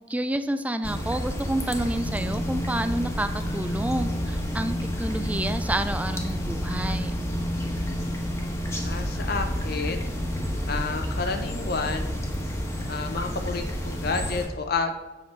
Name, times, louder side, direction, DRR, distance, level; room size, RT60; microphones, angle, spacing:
voice 1, 0.1-7.1, right 1 dB, 10° right, 10 dB, 0.3 m, -29 dB
sound 1, 0.8-14.5, equal, 15° left, 1.3 m, -29 dB
voice 2, 8.8-10.1 10.7-12.3 12.9-14.9, left 4 dB, 55° left, 6 dB, 0.7 m, -30 dB
7.9 x 7.0 x 4.5 m, 1.2 s
head